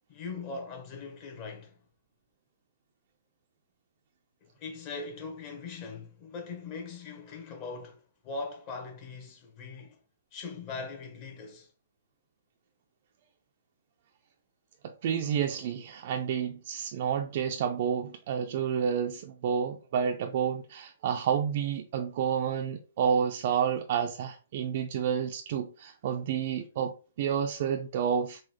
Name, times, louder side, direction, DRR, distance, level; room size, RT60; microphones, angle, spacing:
voice 1, 0.1-1.8 4.4-10.0 10.3-11.7, left 4 dB, 30° left, 1.1 m, -41 dB
voice 2, 14.8-28.4, right 8 dB, 50° right, 0.4 m, -30 dB
3.9 x 2.3 x 3.1 m
hypercardioid pair, 145°, 0 cm